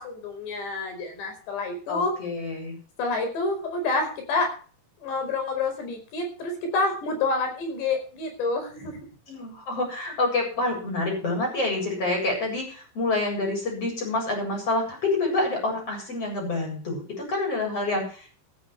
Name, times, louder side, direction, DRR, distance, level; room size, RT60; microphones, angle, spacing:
voice 1, 0.0-2.1 3.0-4.5 5.0-9.0, left 3 dB, 80° left, 5 dB, 7.1 m, -28 dB
voice 2, 1.9-2.8 9.3-18.3, left 2 dB, 35° left, 1 dB, 8.9 m, -27 dB
15.5 x 14.5 x 3.4 m, 0.41 s
omnidirectional pair, 4.9 m